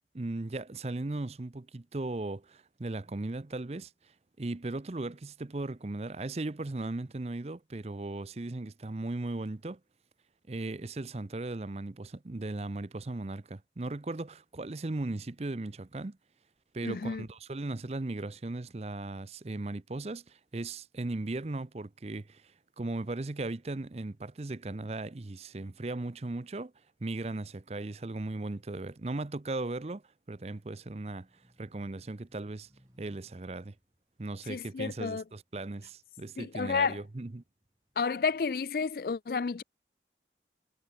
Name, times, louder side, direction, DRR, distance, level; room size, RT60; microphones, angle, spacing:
voice 1, 0.1-3.9 4.4-9.8 10.5-16.2 16.7-22.5 22.8-26.7 27.0-30.0 30.3-31.3 31.6-32.7 33.0-33.7 34.2-37.4, right 2 dB, 35° right, 0.6 m, -37 dB
voice 2, 16.8-17.2 34.5-35.2 36.4-37.0 38.0-39.6, left 5 dB, 55° left, 0.4 m, -31 dB
sound 1, 30.5-36.1 36.6-38.5, equal, 20° right, 4.9 m, -67 dB
head